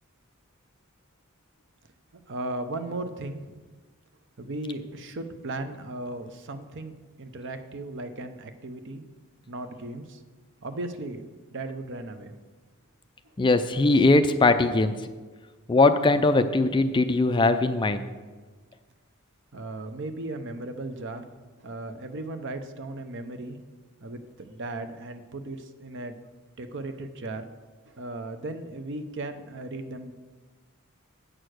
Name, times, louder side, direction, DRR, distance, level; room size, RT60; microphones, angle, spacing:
voice 1, 2.3-3.5 4.4-9.0 9.5-10.2 10.6-11.2 11.5-12.4 19.5-21.3 21.6-23.6 24.0-26.2 26.6-27.5 27.8-30.1, right 2 dB, 55° right, 8 dB, 0.7 m, -36 dB
voice 2, 13.4-14.9 15.7-18.0, left 2 dB, 20° left, 10 dB, 0.4 m, -20 dB
8.9 x 6.5 x 6.4 m, 1.4 s
head